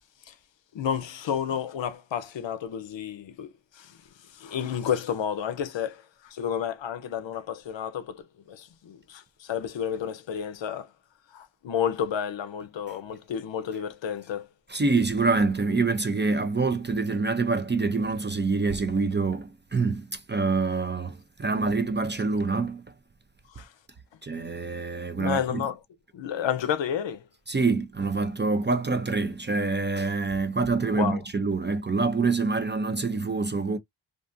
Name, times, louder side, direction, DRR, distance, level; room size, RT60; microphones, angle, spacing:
voice 1, 0.7-4.0 4.3-10.9 11.3-14.5 23.5-23.7 25.2-25.8 26.1-27.2 30.9-31.2, left 8 dB, 65° left, 0.6 m, -31 dB
voice 2, 14.7-22.8 24.2-25.6 27.5-33.8, right 4 dB, 25° right, 0.4 m, -26 dB
2.5 x 2.4 x 2.5 m
wide cardioid pair, 85°, 48 cm